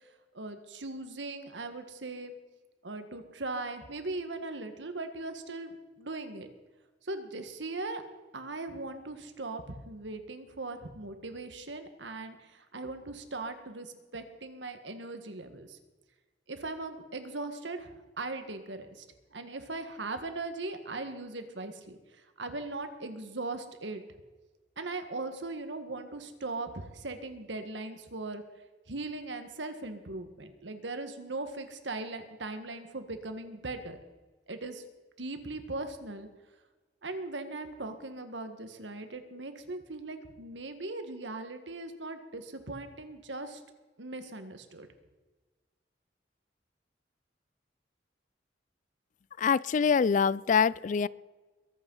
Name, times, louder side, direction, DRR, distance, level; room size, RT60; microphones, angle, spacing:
voice 1, 0.3-2.3 2.8-6.5 7.0-8.0 8.3-15.8 16.5-19.1 19.3-22.0 22.4-24.0 24.8-28.4 28.9-34.0 34.5-34.8 35.2-36.3 37.0-43.6 44.0-44.9, right 2 dB, 90° right, 8 dB, 1.7 m, -39 dB
voice 2, 49.4-51.1, left 6 dB, 45° left, 22 dB, 0.3 m, -25 dB
22.5 x 8.9 x 5.6 m, 1.3 s
head